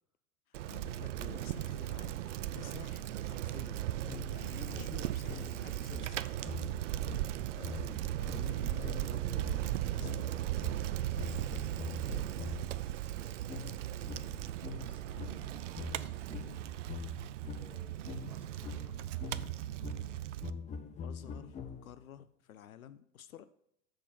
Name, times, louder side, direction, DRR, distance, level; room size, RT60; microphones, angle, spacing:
voice 1, 0.5-6.5 7.6-9.5 9.8-10.5 21.0-23.5, left 10 dB, 70° left, 0.6 m, -51 dB
Bicycle, 0.5-20.5, right 13 dB, 60° right, 0.6 m, -37 dB
sound 1, 4.1-12.8 13.5-22.1, left 5 dB, 15° left, 0.6 m, -45 dB
voice 2, 14.7-16.7 17.5-19.4, equal, 5° right, 2.5 m, -60 dB
7.7 x 6.3 x 5.6 m
figure-of-eight pair, 90°, 43 cm